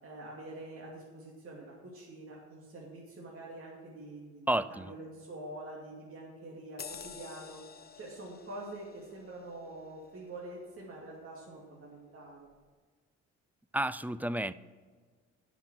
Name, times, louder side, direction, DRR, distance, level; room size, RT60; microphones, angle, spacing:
voice 1, 0.0-7.6 8.0-12.5, right 2 dB, 45° right, -4 dB, 2.5 m, -46 dB
voice 2, 4.5-4.9 13.7-14.5, right 1 dB, 5° right, 16 dB, 0.3 m, -31 dB
sound 1, 6.8-11.7 12.2-12.4, left 6 dB, 35° left, 0.6 m, -51 dB
11.0 x 6.0 x 7.4 m, 1.5 s
cardioid pair, 90°, 30 cm